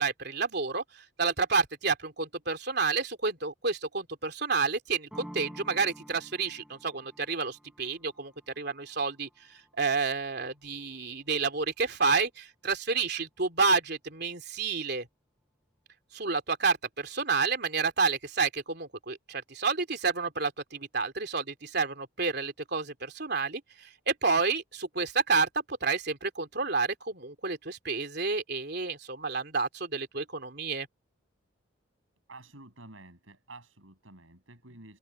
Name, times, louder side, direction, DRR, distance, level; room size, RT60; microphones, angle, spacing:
voice 1, 0.0-15.1 16.1-30.9, right 4 dB, 55° right, 3.4 m, -30 dB
sound 1, 5.1-10.7, equal, 5° right, 7.3 m, -50 dB
voice 2, 32.3-35.0, right 2 dB, 80° right, 7.6 m, -50 dB
open air
head